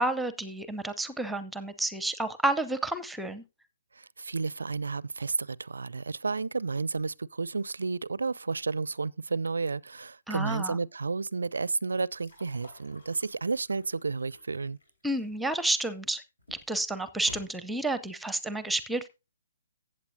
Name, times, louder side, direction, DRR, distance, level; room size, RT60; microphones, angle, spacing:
voice 1, 0.0-3.4 10.3-10.8 15.0-16.2 16.7-19.1, right 2 dB, 5° right, 0.7 m, -30 dB
voice 2, 4.0-14.8, right 4 dB, 70° right, 0.4 m, -32 dB
sound 1, 12.1-15.9 16.4-16.8 17.1-17.5, left 1 dB, 75° left, 4.7 m, -51 dB
15.0 x 8.5 x 2.6 m
figure-of-eight pair, 130°, 0 cm